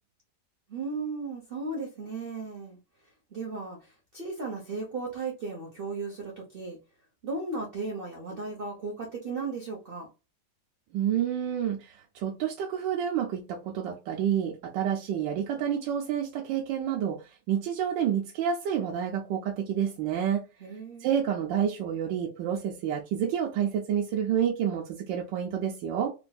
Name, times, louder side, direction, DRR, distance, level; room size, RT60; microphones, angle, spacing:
voice 1, 0.7-2.8 3.3-6.8 7.2-10.1 20.6-21.1, right 3 dB, 45° right, 0.7 m, -35 dB
voice 2, 10.9-20.5 21.0-26.1, right 9 dB, 80° right, 1.3 m, -29 dB
3.9 x 2.5 x 2.3 m
omnidirectional pair, 2.0 m